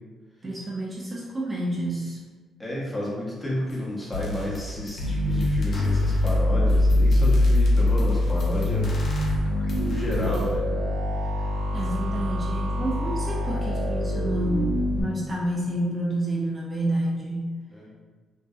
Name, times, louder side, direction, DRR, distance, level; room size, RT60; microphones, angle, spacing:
voice 1, 0.4-2.2 11.2-11.3 11.7-17.6, right 1 dB, 25° right, -4 dB, 0.4 m, -29 dB
voice 2, 2.6-8.9 9.7-10.7 17.7-17.9, left 1 dB, 10° left, -5 dB, 0.7 m, -31 dB
sound 1, 3.7-3.8 4.1-10.6, left 2 dB, 60° left, 0.5 m, -35 dB
sound 2, 5.0-15.0, left 1 dB, 75° right, 0.9 m, -23 dB
2.6 x 2.1 x 2.3 m, 1.4 s
cardioid pair, 90°, 0 cm